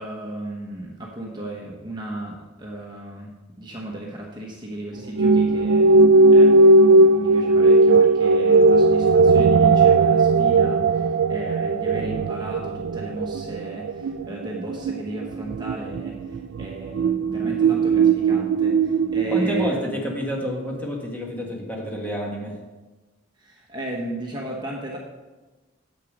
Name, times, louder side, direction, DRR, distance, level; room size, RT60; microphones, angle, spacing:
voice 1, 0.0-6.0 6.3-20.0 23.4-25.0, right 1 dB, 20° right, -2 dB, 1.1 m, -35 dB
sound 1, 5.2-19.8, right 3 dB, 75° right, 0.3 m, -17 dB
voice 2, 19.3-22.6, equal, 10° left, -1 dB, 1.4 m, -28 dB
8.1 x 6.6 x 5.2 m, 1.2 s
head